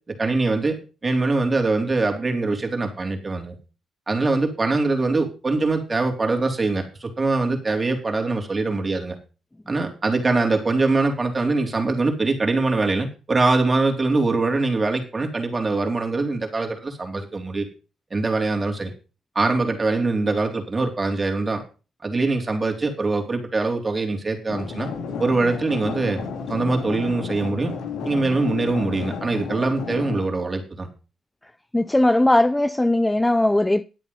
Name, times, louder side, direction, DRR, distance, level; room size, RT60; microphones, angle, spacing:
voice 1, 0.2-3.5 4.1-9.2 9.7-17.7 18.1-18.9 19.4-21.6 22.0-24.9 25.2-26.2 26.5-27.7 28.0-30.9, right 3 dB, 25° right, 3.9 m, -23 dB
sound 1, 24.5-30.3, left 5 dB, 80° left, 3.0 m, -32 dB
voice 2, 31.7-33.8, left 1 dB, 10° left, 0.5 m, -19 dB
11.5 x 8.5 x 5.6 m
cardioid pair, 90°, 0 cm